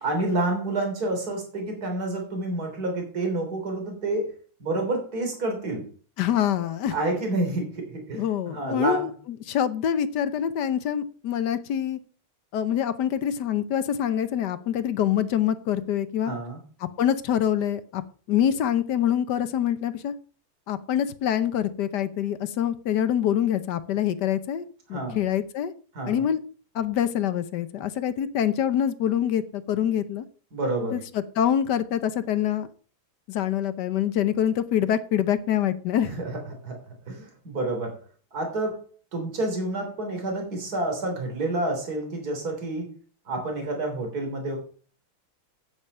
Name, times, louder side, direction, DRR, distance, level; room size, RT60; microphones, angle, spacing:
voice 1, 0.0-4.3 4.6-5.8 6.9-9.1 16.2-16.6 24.9-25.2 25.9-26.2 30.5-31.0 36.0-36.8 37.1-37.9 38.3-38.8 39.1-42.9 43.3-44.6, right 2 dB, 45° right, 3 dB, 3.8 m, -29 dB
voice 2, 6.2-6.9 8.2-9.1 9.5-12.0 12.5-16.3 17.0-18.0 18.3-20.1 20.7-25.7 26.1-26.4 26.7-30.2 30.9-32.7 33.3-36.1, left 10 dB, 60° left, 12 dB, 1.2 m, -25 dB
9.5 x 8.9 x 5.6 m, 0.41 s
omnidirectional pair, 2.4 m